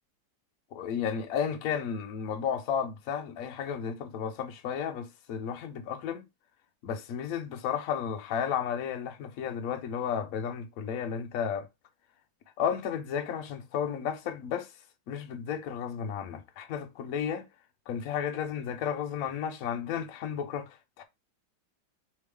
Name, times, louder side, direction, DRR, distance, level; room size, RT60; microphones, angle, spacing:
voice 1, 0.7-6.3 6.8-11.7 12.6-14.7 15.1-17.5 17.9-21.0, left 7 dB, 65° left, 0.8 m, -33 dB
3.5 x 3.3 x 3.3 m
omnidirectional pair, 2.1 m